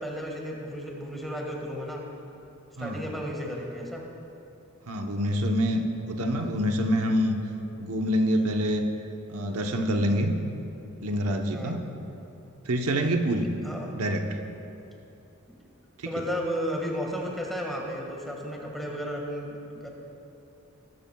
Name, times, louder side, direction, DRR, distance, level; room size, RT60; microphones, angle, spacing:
voice 1, 0.0-2.0 2.8-4.0 11.5-11.7 13.6-13.9 15.5-15.6 16.0-19.9, equal, ahead, -2 dB, 1.7 m, -33 dB
voice 2, 4.9-7.4 7.8-8.9 9.3-10.4 11.0-11.9 12.7-13.6 13.9-14.4, equal, 90° right, 3 dB, 0.9 m, -26 dB
19.5 x 13.0 x 2.3 m, 2.8 s
head